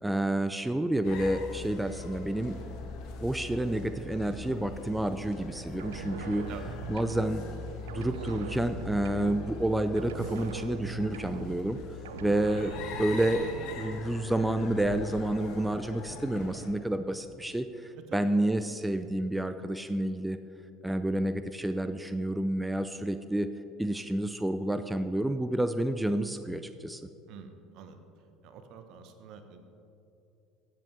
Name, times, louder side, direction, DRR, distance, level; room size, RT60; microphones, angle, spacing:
voice 1, 0.0-2.6 3.2-6.5 6.9-7.4 7.9-11.8 12.2-12.7 13.0-13.4 13.7-20.4 20.8-23.5 23.8-27.1, right 1 dB, 5° right, 10 dB, 0.4 m, -29 dB
sound 1, 1.0-16.7, left 4 dB, 55° left, 1.4 m, -42 dB
sound 2, 5.8-7.6 7.9-9.7 10.0-11.8 12.1-13.7, right 8 dB, 75° right, 0.4 m, -42 dB
voice 2, 27.3-28.0 28.4-29.6, right 7 dB, 55° right, 8 dB, 1.0 m, -47 dB
15.5 x 7.7 x 3.3 m, 2.8 s
hypercardioid pair, 70°, 0 cm